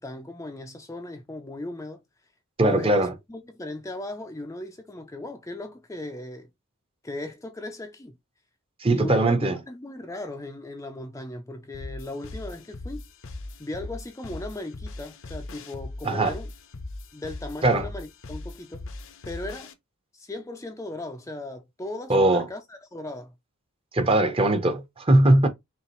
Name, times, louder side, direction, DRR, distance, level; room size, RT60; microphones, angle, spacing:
voice 1, 0.0-2.0 2.6-6.5 7.0-8.2 8.9-13.1 13.6-16.5 17.1-18.9 19.3-19.7 20.1-23.3, left 2 dB, 15° left, 0.4 m, -37 dB
voice 2, 2.6-3.1 8.8-9.6 16.0-16.3 17.6-17.9 22.1-22.5 23.9-25.5, right 1 dB, 25° right, 0.8 m, -20 dB
sound 1, 11.7-19.7, left 2 dB, 60° left, 0.7 m, -39 dB
5.5 x 2.5 x 3.0 m
head